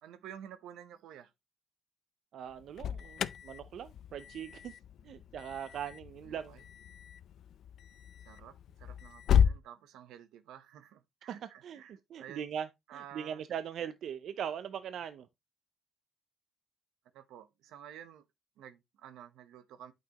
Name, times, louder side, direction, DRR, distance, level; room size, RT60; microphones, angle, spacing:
voice 1, 0.0-1.3 6.2-6.7 8.2-12.5 12.9-13.4 17.1-18.2 18.6-19.9, right 10 dB, 85° right, 0.9 m, -51 dB
voice 2, 2.3-4.8 5.0-6.5 11.3-11.4 11.6-11.8 12.1-15.3, right 8 dB, 70° right, 0.5 m, -40 dB
Alarm, 2.5-9.6, left 8 dB, 70° left, 0.5 m, -33 dB
8.7 x 5.9 x 3.0 m
cardioid pair, 90°, 0 cm